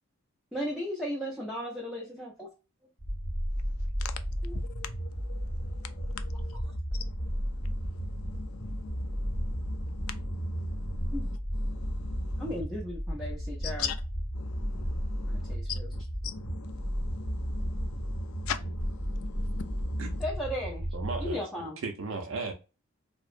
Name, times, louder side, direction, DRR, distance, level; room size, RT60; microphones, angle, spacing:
voice 1, 0.5-2.5 4.4-4.6 11.1-11.2 12.4-13.9 15.3-15.9 20.2-20.9 21.2-21.8, equal, ahead, 0.4 m, -35 dB
sound 1, 3.0-21.4, equal, 15° left, 1.1 m, -33 dB
voice 2, 3.6-12.6 13.6-14.0 14.3-20.2, left 8 dB, 80° left, 0.4 m, -43 dB
voice 3, 20.9-22.5, right 4 dB, 70° right, 0.5 m, -36 dB
2.7 x 2.0 x 2.4 m
head